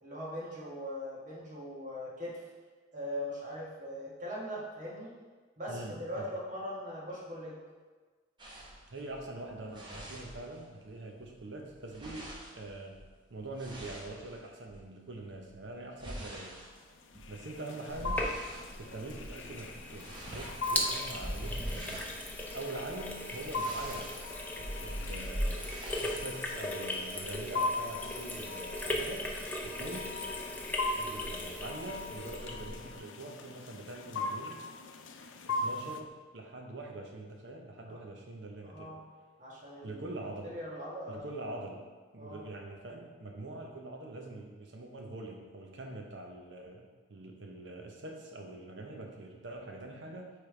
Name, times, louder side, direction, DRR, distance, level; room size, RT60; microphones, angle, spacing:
voice 1, 0.0-2.4 2.9-5.1 5.6-7.6 37.9-38.0 38.6-39.0 39.4-40.0 40.4-41.2 42.2-42.4, equal, 40° right, -5 dB, 1.4 m, -40 dB
voice 2, 5.7-6.3 8.9-13.0 13.3-16.6 17.3-18.2 18.8-22.1 22.5-24.1 24.8-25.7 26.0-29.3 29.6-30.2 30.9-34.6 35.5-36.1 36.3-38.9 39.8-40.6 41.1-41.8 42.1-50.3, right 2 dB, 70° right, 2 dB, 0.8 m, -44 dB
sound 1, 8.4-10.9 11.2-14.8 15.4-18.7 19.1-19.4 19.7-26.2, equal, 25° right, 0.9 m, -42 dB
sound 2, 16.8-36.0, left 2 dB, 80° left, 0.5 m, -40 dB
Sink (filling or washing), 17.9-33.0, left 1 dB, 10° left, 0.5 m, -39 dB
8.5 x 3.4 x 3.3 m, 1.4 s
head